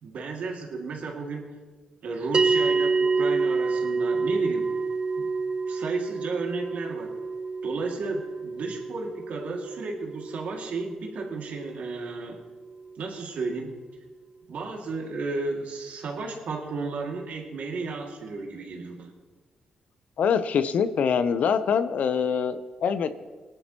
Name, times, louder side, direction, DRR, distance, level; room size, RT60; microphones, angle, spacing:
voice 1, 0.0-1.5 2.0-4.7 5.2-5.3 5.7-7.1 7.6-12.4 13.0-13.8 14.5-19.1, right 3 dB, 70° right, 1 dB, 2.2 m, -33 dB
sound 1, 2.3-12.9, right 4 dB, 35° right, 0.5 m, -28 dB
voice 2, 20.2-23.2, left 7 dB, 70° left, 12 dB, 0.7 m, -24 dB
18.5 x 11.0 x 3.0 m, 1.4 s
supercardioid pair, 55°, 3 cm